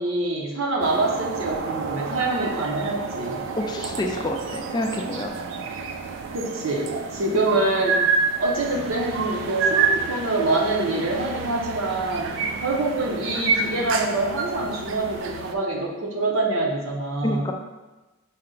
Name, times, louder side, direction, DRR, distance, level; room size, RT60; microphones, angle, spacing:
voice 1, 0.0-3.4 6.3-8.0 8.4-17.4, right 2 dB, 80° right, -1 dB, 0.8 m, -25 dB
sound 1, 0.8-15.5, right 5 dB, 65° right, 0.4 m, -28 dB
voice 2, 3.6-5.3 7.3-7.4 17.2-17.5, left 1 dB, 20° left, 2 dB, 0.3 m, -28 dB
5.3 x 2.2 x 3.8 m, 1.1 s
head